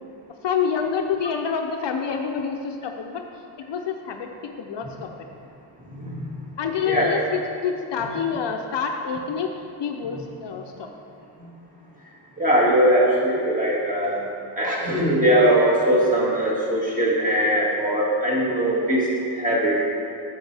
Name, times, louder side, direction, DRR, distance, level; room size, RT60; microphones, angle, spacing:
voice 1, 0.4-3.2 3.7-4.3 4.6-5.1 6.6-9.5 9.8-10.9, left 6 dB, 55° left, 3 dB, 0.6 m, -27 dB
voice 2, 5.9-6.2 6.9-7.2 11.4-11.5 12.4-14.3 14.6-19.8, right 1 dB, 15° right, -6 dB, 2.1 m, -21 dB
8.8 x 7.8 x 3.4 m, 2.5 s
cardioid pair, 105°, 50 cm